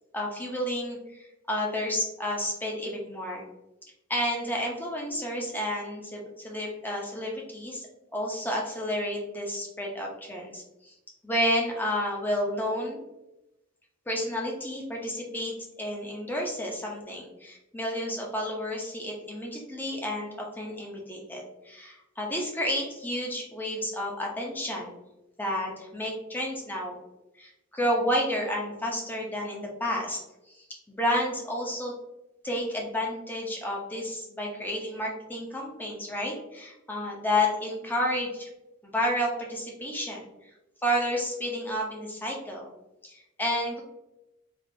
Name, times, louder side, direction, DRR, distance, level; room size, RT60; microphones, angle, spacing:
voice 1, 0.1-3.4 4.1-7.8 8.1-10.9 11.2-13.0 14.1-25.0 25.4-27.0 27.4-30.2 30.5-31.9 32.4-38.5 38.8-40.2 40.8-42.7 43.0-43.8, equal, 10° left, -1 dB, 0.6 m, -31 dB
3.3 x 2.5 x 2.5 m, 0.93 s
head